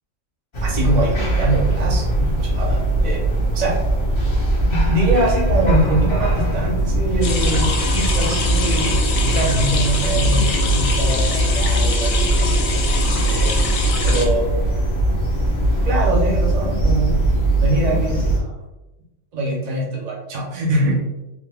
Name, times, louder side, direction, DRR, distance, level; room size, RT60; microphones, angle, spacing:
sound 1, 0.5-18.4, right 1 dB, 35° left, 0.4 m, -20 dB
voice 1, 0.6-3.3 3.5-3.8 4.6-12.8 13.2-13.6 14.0-14.5 15.8-17.2 17.5-18.5 19.3-21.0, right 1 dB, 50° right, -2 dB, 0.5 m, -23 dB
sound 2, 7.2-14.3, left 4 dB, 80° left, 1.0 m, -25 dB
3.0 x 2.2 x 3.4 m, 1.0 s
omnidirectional pair, 1.4 m